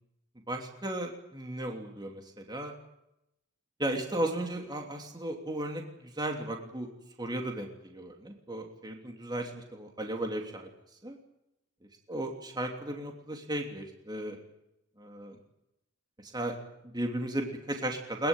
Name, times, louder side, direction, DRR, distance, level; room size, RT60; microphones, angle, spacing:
voice 1, 0.5-2.7 3.8-6.9 7.2-10.7 11.0-11.2 12.1-14.4 15.0-15.4 16.2-16.6 16.8-18.3, right 1 dB, 20° right, 2 dB, 3.0 m, -35 dB
22.0 x 21.5 x 9.0 m, 0.83 s
head